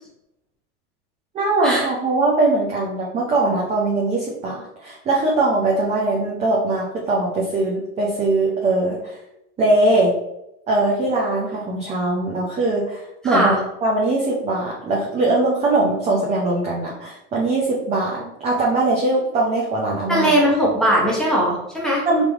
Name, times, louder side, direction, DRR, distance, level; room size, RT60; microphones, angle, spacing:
voice 1, 1.3-9.1 9.6-10.1 10.7-13.5 13.8-20.3 22.1-22.2, right 2 dB, 15° right, -4 dB, 0.5 m, -21 dB
voice 2, 13.2-13.6 20.1-22.0, equal, ahead, -4 dB, 1.1 m, -19 dB
3.6 x 3.3 x 3.5 m, 0.86 s
supercardioid pair, 130°, 44 cm